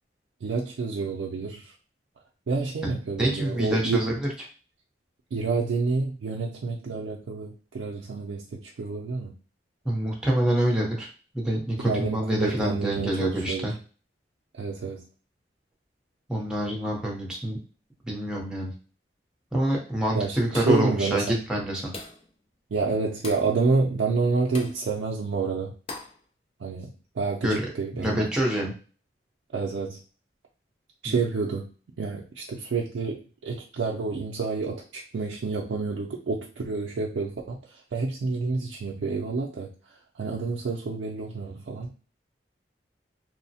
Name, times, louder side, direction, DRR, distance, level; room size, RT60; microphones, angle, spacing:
voice 1, 0.4-1.7 2.5-4.1 5.3-9.3 11.8-13.7 14.5-15.0 20.1-21.4 22.7-25.7 26.6-26.9 27.2-28.3 29.5-30.0 31.0-31.7 32.0-39.7 40.2-41.9, right 4 dB, 90° right, -1 dB, 0.4 m, -28 dB
voice 2, 3.2-4.3 9.8-11.1 11.3-13.7 16.3-17.6 18.0-18.7 19.5-21.9 27.4-27.5 27.9-28.7 31.0-31.2, right 1 dB, 5° right, -2 dB, 0.7 m, -26 dB
sound 1, 20.5-20.9 21.9-22.3 23.2-23.5 24.5-24.8 25.9-26.2, left 3 dB, 30° left, 0.4 m, -39 dB
3.0 x 2.0 x 2.7 m, 0.38 s
head